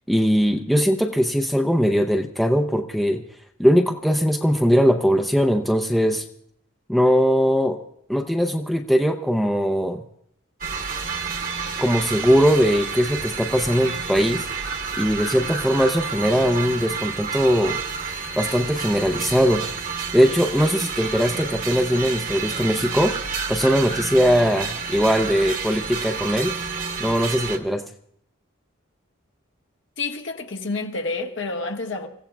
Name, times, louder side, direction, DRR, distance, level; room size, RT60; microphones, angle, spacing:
voice 1, 0.1-3.2 3.6-6.2 6.9-7.8 8.1-10.0 11.8-14.5 15.0-17.8 18.4-19.7 20.1-23.2 23.5-26.5 27.0-27.8, equal, ahead, 0.5 m, -20 dB
sound 1, 10.6-27.6, right 5 dB, 40° right, 1.1 m, -30 dB
voice 2, 30.0-32.1, left 3 dB, 65° left, 1.4 m, -29 dB
29.5 x 15.5 x 2.3 m
head